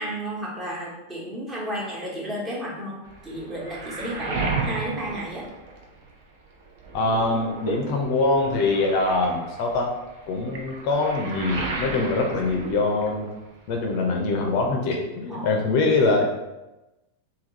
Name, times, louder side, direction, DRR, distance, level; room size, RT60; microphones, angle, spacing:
voice 1, 0.0-5.4 15.3-15.5, right 1 dB, 20° right, -4 dB, 1.2 m, -32 dB
Waves surf, 3.0-6.3 6.6-13.5 13.8-14.7, right 3 dB, 50° right, 0.7 m, -34 dB
voice 2, 6.9-9.9 10.3-13.3 13.7-16.3, left 3 dB, 45° left, 1 dB, 0.5 m, -23 dB
3.5 x 2.3 x 4.0 m, 1.0 s
figure-of-eight pair, 90°, 0 cm